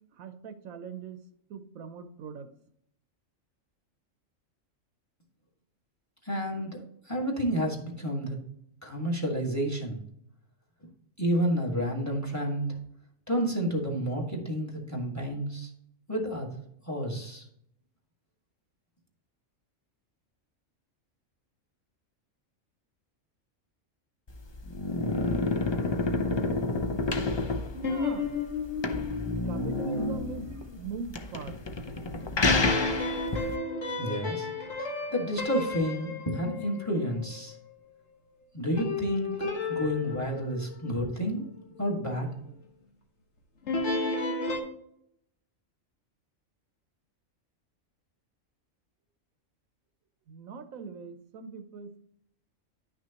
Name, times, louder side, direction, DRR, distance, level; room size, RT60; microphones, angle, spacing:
voice 1, 0.1-1.2 1.5-2.5 27.6-28.3 29.4-31.6 34.1-34.3 50.3-52.0, right 5 dB, 85° right, 9 dB, 1.2 m, -41 dB
voice 2, 6.2-8.4 8.8-10.0 11.2-12.7 13.3-15.7 16.1-16.5 16.8-17.4 33.9-34.5 35.1-37.6 38.5-41.5 41.8-42.3, equal, 10° left, 0 dB, 1.7 m, -30 dB
sound 1, 24.3-33.5, left 2 dB, 40° left, 0.4 m, -29 dB
sound 2, 27.8-30.9 32.5-36.9 38.8-41.4 43.7-44.6, left 3 dB, 60° left, 1.6 m, -33 dB
10.5 x 6.1 x 2.9 m, 0.73 s
omnidirectional pair, 1.4 m